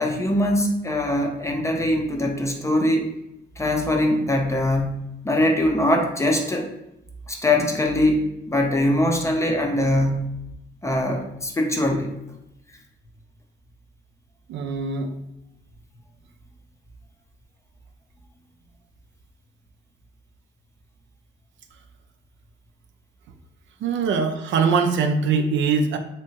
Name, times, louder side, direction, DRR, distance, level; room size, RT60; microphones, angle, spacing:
voice 1, 0.0-3.1 3.6-6.7 7.3-10.3 10.8-12.1, left 1 dB, 15° left, 2 dB, 0.5 m, -22 dB
voice 2, 14.5-15.1 23.8-26.0, right 5 dB, 70° right, 6 dB, 0.4 m, -22 dB
3.4 x 2.8 x 2.8 m, 0.85 s
cardioid pair, 90°, 20 cm